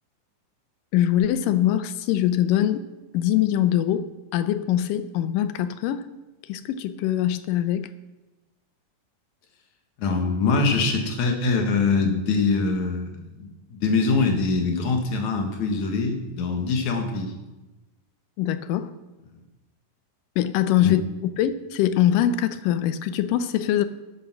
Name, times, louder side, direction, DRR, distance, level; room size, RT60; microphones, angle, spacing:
voice 1, 0.9-2.8 3.1-6.0 6.5-7.9 18.4-18.9 20.4-23.9, left 11 dB, 75° left, 12 dB, 2.2 m, -23 dB
voice 2, 10.0-17.3 20.8-20.9, left 4 dB, 60° left, 4 dB, 2.7 m, -23 dB
12.5 x 10.5 x 6.1 m, 1.1 s
omnidirectional pair, 4.1 m